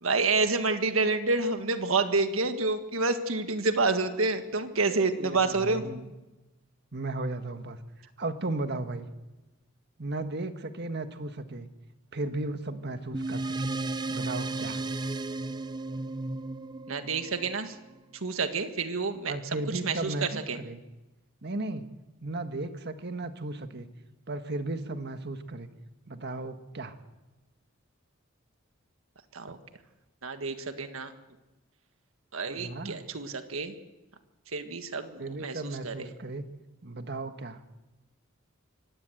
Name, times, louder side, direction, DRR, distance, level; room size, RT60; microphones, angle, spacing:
voice 1, 0.0-5.8 16.9-17.7 18.2-19.3 19.8-20.6 29.3-29.6 30.2-31.1 32.3-33.7 34.5-36.1, right 3 dB, 90° right, 8 dB, 1.7 m, -28 dB
voice 2, 5.2-6.1 6.9-9.1 10.0-11.7 12.1-13.7 14.1-14.8 19.3-20.8 21.4-21.9 22.2-23.9 24.3-25.7 26.1-27.0 32.5-33.0 35.2-36.5 36.8-37.6, right 2 dB, 55° right, 8 dB, 1.5 m, -35 dB
sound 1, 13.1-17.9, right 2 dB, 20° right, 0.6 m, -34 dB
24.5 x 16.5 x 7.9 m, 1.1 s
head